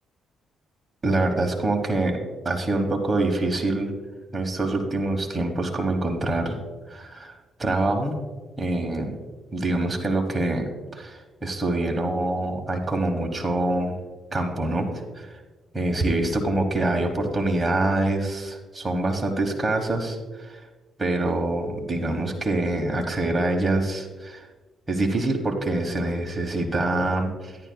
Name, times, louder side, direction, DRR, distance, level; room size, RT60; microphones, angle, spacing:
voice 1, 1.0-2.2 2.4-3.9 4.3-6.6 6.9-7.3 7.6-8.2 8.6-9.2 9.5-13.9 14.3-15.4 15.7-20.6 21.0-24.5 24.9-27.6, right 2 dB, 20° right, 1 dB, 1.3 m, -25 dB
11.5 x 10.5 x 2.3 m, 1.2 s
cardioid pair, 90°, 0 cm